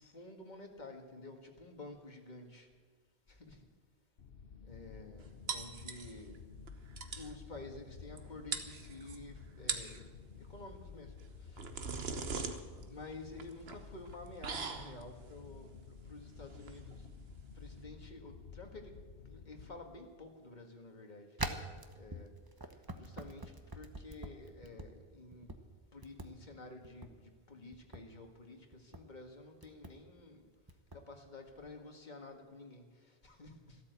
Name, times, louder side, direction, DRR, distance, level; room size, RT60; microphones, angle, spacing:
voice 1, 0.0-2.7 3.3-3.6 4.6-6.4 7.2-10.1 10.4-11.1 11.4-11.6 12.8-17.0 17.6-18.9 19.3-21.3 21.9-22.3 23.0-25.5 25.9-30.4 30.9-33.8, left 2 dB, 45° left, 3 dB, 2.0 m, -51 dB
sound 1, 4.2-19.8, left 6 dB, 65° left, 1.1 m, -53 dB
sound 2, 5.5-6.4 6.7-6.8 7.0-7.3 8.2-8.3 8.5-9.2 9.6-10.0 11.2-17.8, right 5 dB, 70° right, 1.3 m, -41 dB
sound 3, 21.4-24.9 25.3-25.6 26.0-26.3 26.8-27.1 27.7-28.0 28.7-29.0 29.6-29.9 30.7-31.0, right 2 dB, 20° right, 1.0 m, -43 dB
13.5 x 13.0 x 8.0 m, 1.4 s
omnidirectional pair, 1.1 m